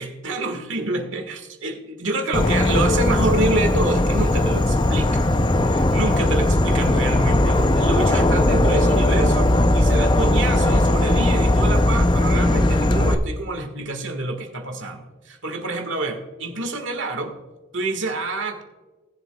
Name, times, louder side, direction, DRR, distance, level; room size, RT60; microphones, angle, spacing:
voice 1, 0.0-5.4 5.7-17.4 17.7-18.6, right 2 dB, 70° right, 5 dB, 1.7 m, -27 dB
Insect / Frog, 2.3-13.1, left 1 dB, 20° left, 0.5 m, -18 dB
18.5 x 7.4 x 2.3 m, 1.3 s
head